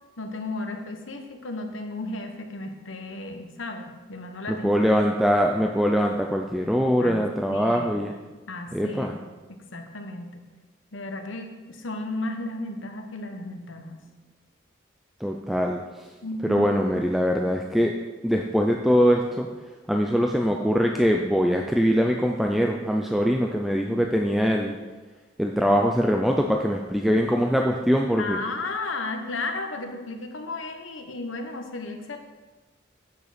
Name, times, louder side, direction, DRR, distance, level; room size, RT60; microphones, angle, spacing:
voice 1, 0.2-4.9 7.0-8.1 8.5-9.2 9.5-10.4 10.9-14.0 16.2-16.7 28.2-32.2, left 2 dB, 85° left, 5 dB, 1.2 m, -34 dB
voice 2, 4.5-8.1 8.7-9.1 15.2-15.8 16.4-17.9 18.2-19.5 19.9-24.7 25.4-28.4, equal, ahead, 1 dB, 0.4 m, -22 dB
8.8 x 6.7 x 5.1 m, 1.3 s
head